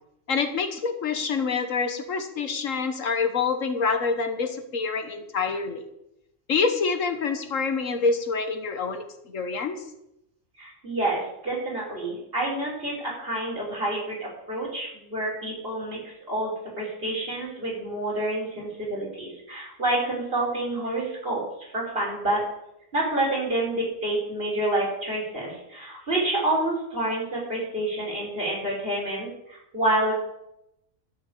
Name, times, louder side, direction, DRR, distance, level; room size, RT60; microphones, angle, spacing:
voice 1, 0.3-5.8 6.5-9.0 9.3-9.8, left 5 dB, 75° left, 8 dB, 1.6 m, -26 dB
voice 2, 10.6-21.4 21.7-22.4 22.9-30.1, right 1 dB, 45° right, -4 dB, 4.9 m, -28 dB
12.5 x 6.6 x 8.4 m, 0.83 s
omnidirectional pair, 1.3 m